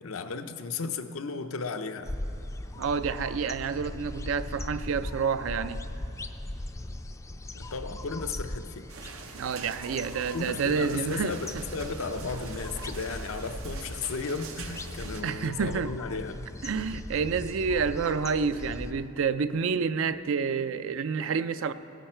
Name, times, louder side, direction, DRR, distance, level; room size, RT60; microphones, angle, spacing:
voice 1, 0.0-2.1 7.5-8.8 10.3-16.5, left 4 dB, 80° left, 7 dB, 0.6 m, -35 dB
sound 1, 2.0-18.9, left 1 dB, 15° left, 0.4 m, -39 dB
voice 2, 2.8-5.8 9.3-11.4 15.1-15.9 16.6-21.7, right 5 dB, 65° right, 12 dB, 0.4 m, -29 dB
sound 2, 8.9-15.2, right 5 dB, 90° right, 0.8 m, -44 dB
17.5 x 10.5 x 4.4 m, 3.0 s
head